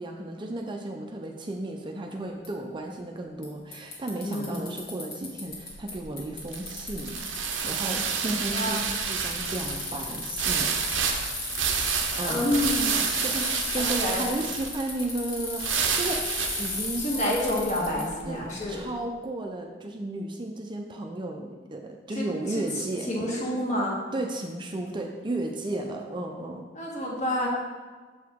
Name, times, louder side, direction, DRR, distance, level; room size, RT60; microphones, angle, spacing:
voice 1, 0.0-10.7 12.2-12.4 13.2-17.0 18.3-18.4 18.7-23.1 24.1-26.7, right 1 dB, 25° right, 2 dB, 0.4 m, -34 dB
Bicycle, 2.4-2.5 3.4-3.5 3.7-5.9 6.2-18.0, left 3 dB, 60° left, 1.7 m, -35 dB
voice 2, 4.2-4.6 8.5-8.8 12.2-13.0 13.8-14.3 17.0-18.8 22.1-22.6 23.1-24.0 26.7-27.5, left 1 dB, 40° left, -3 dB, 1.5 m, -28 dB
sound 1, 5.5-18.8, right 6 dB, 85° right, 0.6 m, -30 dB
7.0 x 4.7 x 3.5 m, 1.4 s
head